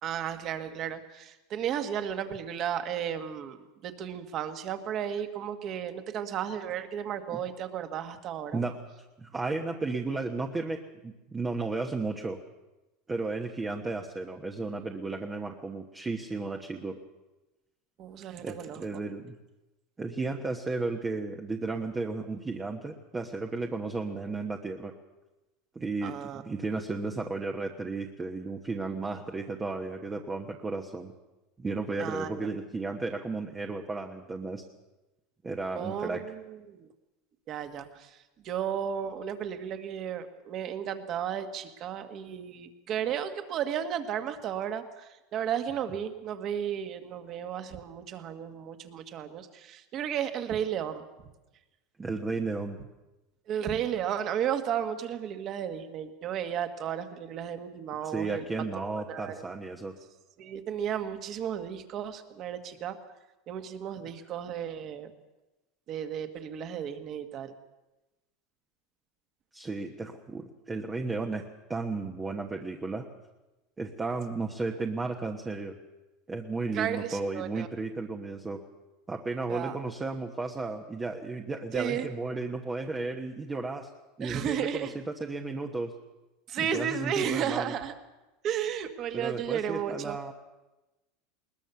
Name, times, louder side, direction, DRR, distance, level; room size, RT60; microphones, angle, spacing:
voice 1, 0.0-8.6 18.0-18.8 26.0-26.4 32.0-32.5 35.7-36.9 37.5-38.2 38.4-51.0 53.5-58.4 58.8-59.4 60.4-63.0 63.5-65.1 65.9-67.5 76.7-77.7 79.5-79.8 81.7-82.1 84.2-84.9 86.5-87.9 88.4-90.2, right 9 dB, 35° right, 8 dB, 1.8 m, -34 dB
voice 2, 9.2-12.4 13.1-17.0 18.4-19.4 20.0-24.9 25.7-31.1 31.6-34.6 35.4-36.2 52.0-52.8 58.0-59.9 69.5-71.4 71.7-73.1 73.8-75.7 76.3-78.6 79.1-83.9 84.2-85.9 86.6-87.7 89.1-90.3, right 3 dB, 15° right, 3 dB, 1.2 m, -34 dB
21.0 x 20.0 x 7.0 m, 1.1 s
supercardioid pair, 155°, 0 cm